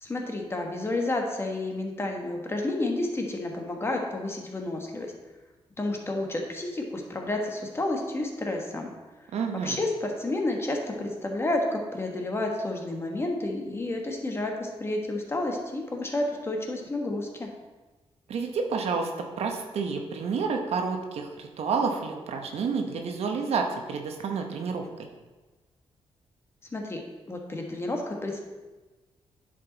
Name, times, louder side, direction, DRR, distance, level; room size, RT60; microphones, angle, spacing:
voice 1, 0.0-5.1 5.8-8.9 9.5-17.5 26.7-27.0 27.3-28.5, left 2 dB, 25° left, 1 dB, 1.4 m, -30 dB
voice 2, 9.3-9.8 18.3-24.8, right 5 dB, 80° right, 3 dB, 0.9 m, -29 dB
9.7 x 5.2 x 4.0 m, 1.2 s
cardioid pair, 105°, 11 cm